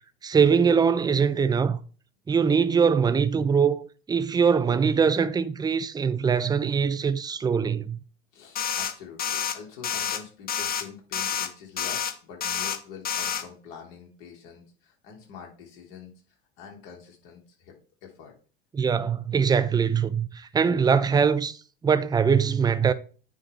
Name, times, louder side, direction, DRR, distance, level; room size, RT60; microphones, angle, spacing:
voice 1, 0.2-1.8 2.3-8.0 18.7-22.9, right 6 dB, 15° right, 0.6 m, -22 dB
voice 2, 8.3-16.1 16.6-17.7 18.0-18.3, left 7 dB, 60° left, 3.1 m, -45 dB
sound 1, 8.6-8.9 9.2-9.5 9.8-10.2 10.5-10.8 11.1-11.5 11.8-12.1 12.4-12.8 13.1-13.4, left 8 dB, 30° left, 1.0 m, -28 dB
9.6 x 3.8 x 4.5 m
hypercardioid pair, 80°, 29 cm